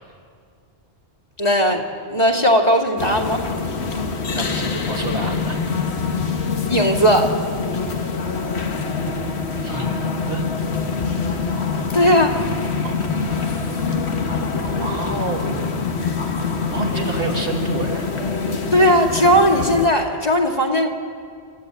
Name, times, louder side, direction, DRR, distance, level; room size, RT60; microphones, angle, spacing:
voice 1, 1.4-1.8 2.1-3.5 6.7-7.4 11.9-12.4 18.7-20.9, equal, 40° left, 0 dB, 2.4 m, -17 dB
sound 1, 3.0-19.9, left 4 dB, 85° left, 1.7 m, -25 dB
voice 2, 4.3-5.6 9.6-10.0 10.2-10.5 12.8-15.8 16.7-18.1, right 2 dB, 65° right, -1 dB, 2.8 m, -29 dB
27.5 x 13.5 x 9.0 m, 2.2 s
omnidirectional pair, 1.1 m